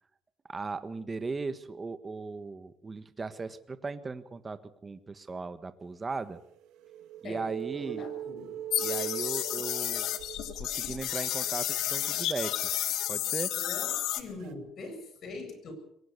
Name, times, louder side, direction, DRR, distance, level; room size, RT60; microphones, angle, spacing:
voice 1, 0.5-6.4 7.2-8.0 8.8-10.1 10.6-12.5 13.1-13.5, right 4 dB, 25° right, 11 dB, 1.6 m, -37 dB
sound 1, 6.4-11.1 14.4-14.5, right 14 dB, 80° right, 1.7 m, -40 dB
voice 2, 7.2-8.6 13.5-15.7, left 2 dB, 50° left, 6 dB, 7.4 m, -42 dB
sound 2, 8.7-14.2, left 12 dB, 75° left, 1.8 m, -31 dB
23.0 x 18.0 x 6.8 m, 0.75 s
cardioid pair, 115°, 0 cm